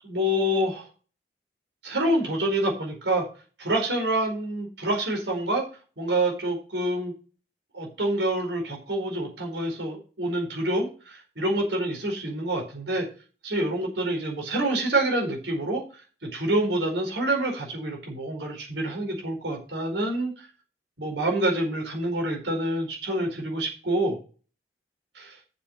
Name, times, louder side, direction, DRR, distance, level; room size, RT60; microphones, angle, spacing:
voice 1, 0.0-0.9 1.8-3.2 3.6-5.6 6.0-7.1 7.7-13.0 13.4-15.8 16.2-20.5 21.0-24.2 25.1-25.4, right 1 dB, 75° right, 1 dB, 4.6 m, -27 dB
7.4 x 7.1 x 8.0 m, 0.37 s
head